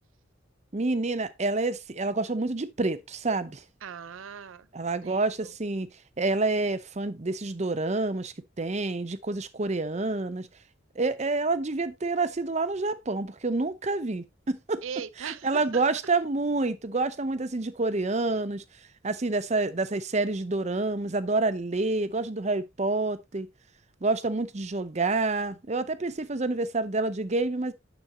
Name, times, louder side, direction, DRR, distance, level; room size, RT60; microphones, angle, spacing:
voice 1, 0.7-3.6 4.7-5.9 6.2-10.5 11.0-14.8 15.2-18.6 19.0-23.5 24.0-27.7, right 3 dB, 35° right, 0.7 m, -28 dB
voice 2, 3.8-4.7 5.0-5.5 14.8-15.8, right 7 dB, 85° right, 0.5 m, -39 dB
10.5 x 6.1 x 2.8 m
head